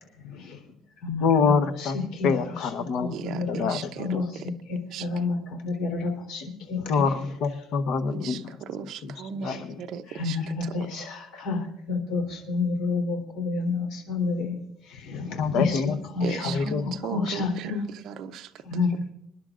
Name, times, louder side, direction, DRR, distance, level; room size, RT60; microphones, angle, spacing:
voice 1, 0.2-0.6 1.0-1.5 1.8-2.4 2.9-3.7 4.0-6.9 9.5-9.6 10.1-17.8 18.6-18.9, left 4 dB, 75° left, 3 dB, 3.5 m, -30 dB
voice 2, 1.2-2.0 2.2-3.1 3.5-3.9 6.9-8.6 9.0-9.1 9.4-9.8 15.4-16.9, left 5 dB, 55° left, 10 dB, 1.0 m, -26 dB
voice 3, 3.1-4.5 4.9-5.1 8.1-10.9 16.2-18.5, right 8 dB, 55° right, 7 dB, 0.7 m, -37 dB
27.0 x 11.0 x 2.5 m, 0.78 s
cardioid pair, 165°, 0 cm